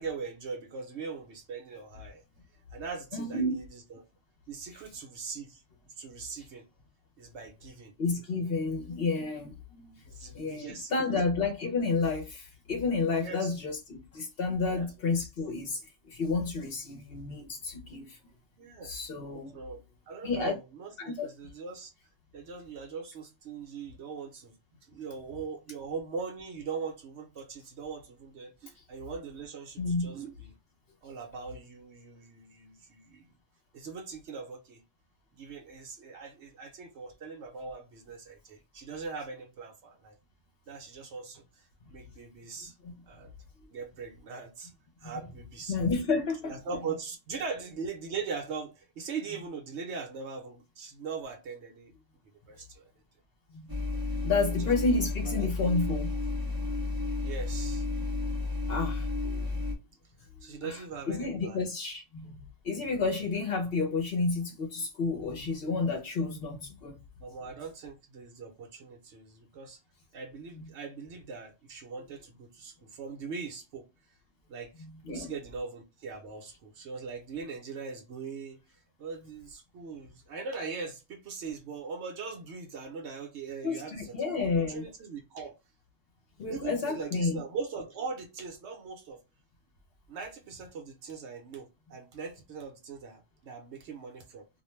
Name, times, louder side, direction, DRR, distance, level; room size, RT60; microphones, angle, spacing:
voice 1, 0.0-2.2 2.7-4.0 4.5-6.7 7.2-7.9 10.1-10.9 13.2-13.5 14.7-14.9 18.6-19.1 19.5-21.9 22.3-24.5 24.9-30.5 31.0-33.3 33.7-34.8 35.3-40.2 40.7-42.7 43.1-43.3 43.7-44.7 45.0-45.8 46.4-51.9 52.5-52.9 54.1-54.2 54.6-55.0 55.2-55.7 57.2-57.9 60.4-61.6 67.2-69.8 70.1-73.9 74.5-84.2 84.4-85.6 86.5-89.2 90.1-94.5, right 5 dB, 70° right, 1.0 m, -41 dB
voice 2, 3.1-3.6 8.0-10.0 10.3-18.2 18.8-19.6 20.2-20.6 21.0-21.3 29.8-30.1 42.8-42.9 45.0-45.1 45.7-46.5 53.5-53.7 54.2-56.1 58.7-59.5 60.4-60.7 61.1-62.4 62.6-67.0 75.1-75.3 83.6-84.8 86.4-87.4, left 3 dB, 60° left, 0.8 m, -31 dB
sound 1, 53.7-59.7, left 3 dB, 30° right, 0.4 m, -32 dB
2.4 x 2.2 x 3.0 m
omnidirectional pair, 1.3 m